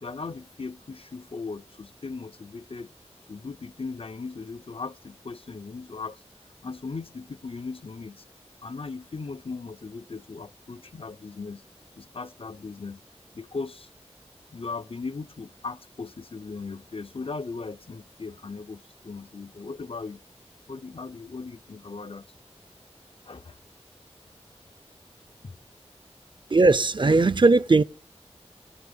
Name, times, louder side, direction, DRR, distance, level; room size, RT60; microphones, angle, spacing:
voice 1, 0.0-2.9 3.3-6.2 6.6-8.2 8.6-11.6 12.0-13.0 13.3-13.9 14.5-20.2 20.7-22.3 23.2-23.6 25.4-25.5, left 4 dB, 55° left, 0.5 m, -38 dB
voice 2, 26.5-27.8, right 3 dB, 45° right, 0.5 m, -18 dB
16.0 x 6.7 x 5.1 m
wide cardioid pair, 45°, 11 cm